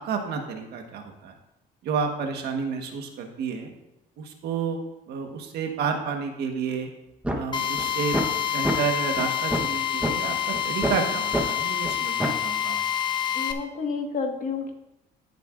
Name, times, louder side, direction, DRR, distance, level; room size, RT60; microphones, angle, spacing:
voice 1, 0.0-1.3 1.8-3.7 4.2-4.8 5.1-6.9 7.3-8.2 8.5-12.8, right 6 dB, 75° right, 4 dB, 1.4 m, -30 dB
sound 1, 7.2-7.4 7.8-7.9 8.1-8.3 8.6-8.8 9.2-9.3 9.5-9.7 10.0-10.1 10.5-10.9 11.3-11.4 11.8-11.9 12.2-12.4, right 1 dB, 5° right, 1.1 m, -25 dB
Drill, 7.5-13.5, left 9 dB, 25° left, 0.7 m, -27 dB
voice 2, 13.3-14.7, left 5 dB, 55° left, 3 dB, 1.6 m, -30 dB
14.0 x 6.8 x 2.5 m, 0.89 s
cardioid pair, 110°, 17 cm